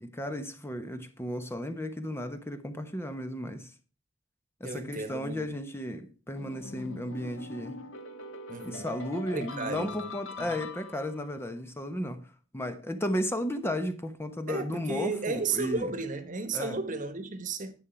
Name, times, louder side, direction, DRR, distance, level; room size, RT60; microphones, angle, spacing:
voice 1, 0.0-3.7 4.6-7.8 8.6-12.3 12.5-15.9 16.5-16.8, equal, 15° left, 1.1 m, -34 dB
voice 2, 4.6-5.5 8.5-8.9 9.3-10.5 14.5-17.7, right 3 dB, 40° right, 1.3 m, -34 dB
sound 1, 6.4-11.3, left 3 dB, 80° left, 1.5 m, -43 dB
11.0 x 8.9 x 4.6 m
head